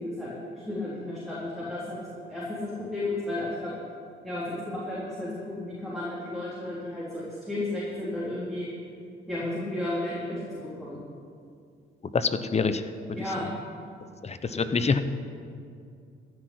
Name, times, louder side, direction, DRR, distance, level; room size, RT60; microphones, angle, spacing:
voice 1, 0.0-3.7 4.2-8.7 9.3-11.0 13.1-13.4 14.5-14.7, left 1 dB, ahead, -9 dB, 3.9 m, -33 dB
voice 2, 12.1-12.8 13.4-13.6 14.2-15.0, left 4 dB, 35° left, 10 dB, 0.9 m, -26 dB
14.5 x 6.3 x 9.5 m, 2.4 s
cardioid pair, 90°, 20 cm